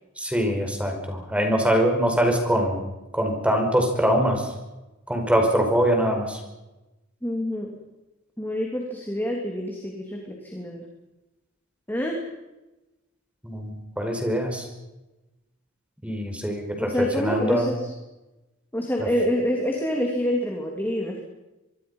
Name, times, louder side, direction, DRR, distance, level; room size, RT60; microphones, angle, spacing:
voice 1, 0.2-2.8 3.1-4.5 5.1-6.4 13.4-13.7 14.0-14.7 16.0-17.7 19.0-19.1, equal, 5° right, 3 dB, 5.1 m, -23 dB
voice 2, 7.2-7.8 8.4-10.9 11.9-12.2 16.8-17.9 18.7-21.2, equal, 10° left, 0 dB, 3.0 m, -27 dB
25.0 x 24.0 x 5.6 m, 1.0 s
head